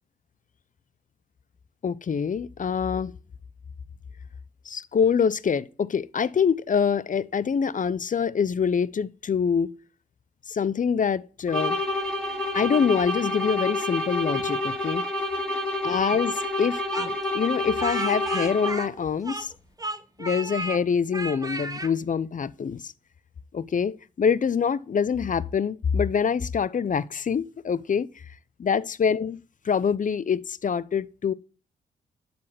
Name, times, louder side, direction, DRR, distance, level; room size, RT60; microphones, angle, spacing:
voice 1, 1.8-3.1 4.7-9.7 10.5-11.8 12.5-15.0 15.8-19.5 20.2-22.9 23.5-28.1 28.6-29.4 29.7-31.3, left 6 dB, 40° left, 0.7 m, -25 dB
sound 1, 11.5-19.0, left 1 dB, 5° left, 3.9 m, -28 dB
Speech, 16.9-19.5 19.8-20.8 21.1-21.9, right 2 dB, 20° right, 1.2 m, -33 dB
12.0 x 4.3 x 7.7 m
hypercardioid pair, 45°, 20 cm